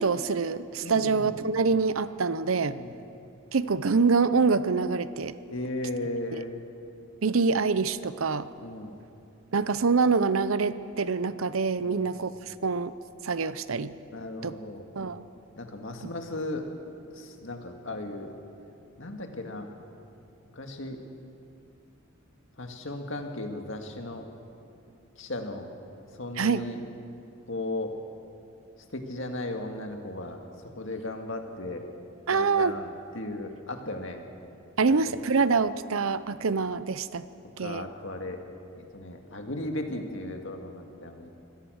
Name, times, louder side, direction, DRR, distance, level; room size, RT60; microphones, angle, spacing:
voice 1, 0.0-2.8 3.5-5.4 7.2-8.5 9.5-12.9 13.2-13.9 14.4-14.6 15.0-15.2 26.4-26.6 32.3-32.8 34.8-37.2 37.6-37.9, right 4 dB, 85° right, 14 dB, 0.7 m, -25 dB
voice 2, 0.8-1.4 2.6-3.0 5.5-6.6 8.6-9.0 11.8-12.1 14.1-14.9 15.5-16.7 17.1-18.3 19.0-19.7 20.5-21.0 22.6-24.2 25.2-25.7 26.1-26.8 27.5-27.9 28.9-31.8 32.3-34.2 37.6-38.5 38.7-41.4, left 2 dB, 65° left, 4 dB, 2.0 m, -36 dB
24.5 x 17.5 x 6.4 m, 2.6 s
head